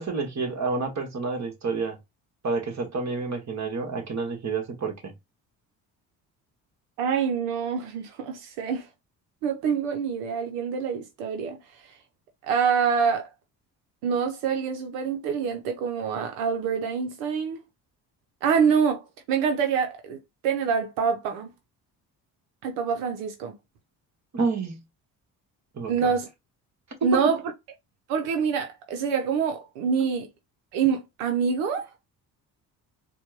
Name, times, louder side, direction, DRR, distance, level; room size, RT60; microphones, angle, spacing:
voice 1, 0.0-2.0 2.4-5.1 24.3-24.8 25.7-26.1, right 4 dB, 40° right, 1.5 m, -29 dB
voice 2, 7.0-8.9 9.4-11.9 12.4-13.3 14.0-17.6 18.4-20.2 20.4-21.5 22.6-23.5 25.9-26.3 27.0-27.4 28.1-30.3 30.7-31.9, right 6 dB, 90° right, 0.7 m, -26 dB
4.3 x 2.2 x 2.9 m
hypercardioid pair, 55°, 42 cm